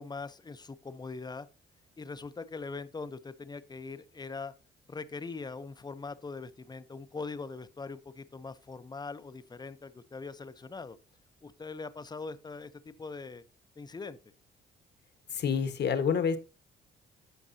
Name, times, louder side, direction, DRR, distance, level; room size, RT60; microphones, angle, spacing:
voice 1, 0.0-1.5 2.0-4.5 4.9-11.0 11.4-13.4 13.8-14.2, left 4 dB, 20° left, 0.7 m, -41 dB
voice 2, 15.3-16.4, left 6 dB, 60° left, 1.3 m, -28 dB
14.0 x 5.3 x 2.7 m
cardioid pair, 90°, 20 cm